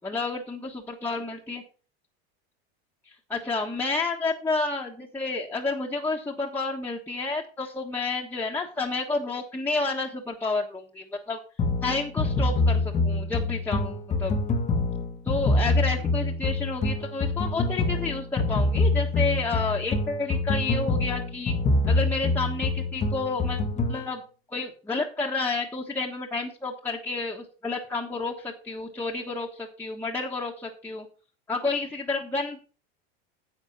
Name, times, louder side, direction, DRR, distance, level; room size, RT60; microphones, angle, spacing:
voice 1, 0.0-1.6 3.3-11.4 11.8-14.4 15.2-21.5 21.9-24.2 24.5-31.1 31.5-32.6, left 3 dB, 5° left, -2 dB, 1.4 m, -30 dB
sound 1, 11.6-24.0, left 2 dB, 25° left, 1.1 m, -25 dB
10.0 x 7.3 x 5.5 m, 0.37 s
supercardioid pair, 130°, 31 cm